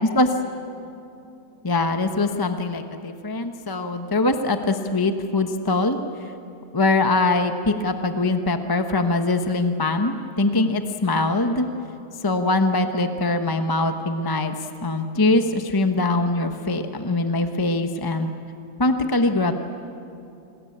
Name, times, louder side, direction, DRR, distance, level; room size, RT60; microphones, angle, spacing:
voice 1, 0.0-0.3 1.6-6.3 6.7-11.7 12.2-14.6 14.8-18.3 18.8-19.5, left 2 dB, 15° left, 6 dB, 0.9 m, -22 dB
28.0 x 20.5 x 8.8 m, 2.6 s
omnidirectional pair, 1.8 m